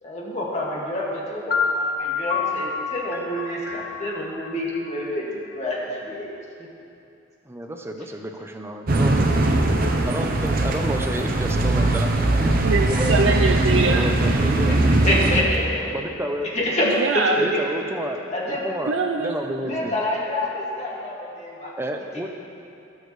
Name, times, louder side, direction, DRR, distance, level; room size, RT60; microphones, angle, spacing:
voice 1, 0.0-6.3 15.0-15.9 16.5-16.9 17.1-17.9 18.3-18.6 19.6-21.7, left 1 dB, 35° left, -5 dB, 2.1 m, -27 dB
sound 1, 1.5-5.3, left 5 dB, 55° left, 1.2 m, -28 dB
voice 2, 7.5-9.2 10.0-12.1 12.4-12.6 12.9-13.2 13.9-14.8 15.9-16.5 17.3-20.0 21.8-22.3, right 1 dB, 15° right, 3 dB, 0.6 m, -30 dB
sound 2, 8.9-15.4, right 2 dB, 50° right, 0.8 m, -20 dB
voice 3, 12.6-14.1 17.0-17.4 18.9-19.4, right 3 dB, 80° right, 3 dB, 0.5 m, -22 dB
18.0 x 6.4 x 3.2 m, 2.7 s
head